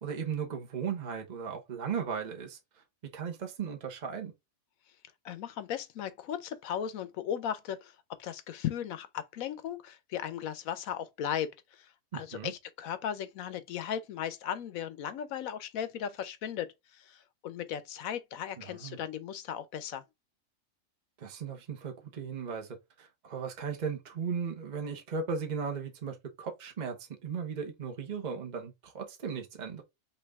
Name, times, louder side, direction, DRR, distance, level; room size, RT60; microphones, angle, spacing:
voice 1, 0.0-2.6 3.0-4.3 12.1-12.5 18.6-19.0 21.2-29.8, right 6 dB, 35° right, 1.0 m, -37 dB
voice 2, 5.2-20.0, left 9 dB, 80° left, 1.1 m, -37 dB
5.7 x 2.7 x 3.5 m
omnidirectional pair, 1.4 m